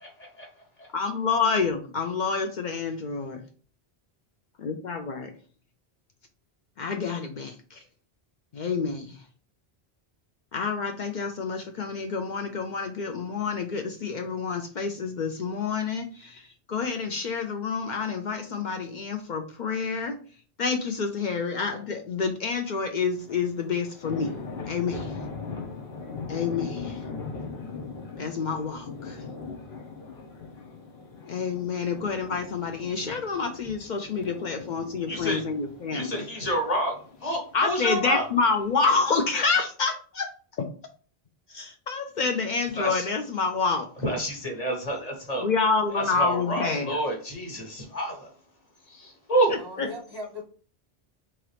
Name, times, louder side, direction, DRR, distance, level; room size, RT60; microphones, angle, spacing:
voice 1, 0.9-3.4 4.6-5.3 6.8-7.8 8.5-9.3 10.5-20.2 20.6-24.3 24.7-25.2 26.3-27.0 28.2-29.2 31.2-36.2 37.5-40.3 40.6-40.7 41.5-43.9 45.4-47.0 49.5-49.9, left 4 dB, 60° left, 5 dB, 0.5 m, -28 dB
sound 1, 23.1-39.4, left 4 dB, 75° left, 1.2 m, -40 dB
voice 2, 35.1-35.4 35.9-36.9 37.2-38.2 42.8-43.0 44.0-45.5 45.9-48.3 48.9-49.5, right 1 dB, 40° left, 1 dB, 1.1 m, -28 dB
voice 3, 49.5-50.4, left 1 dB, 25° right, 3 dB, 0.7 m, -38 dB
3.7 x 3.0 x 3.2 m, 0.42 s
omnidirectional pair, 1.1 m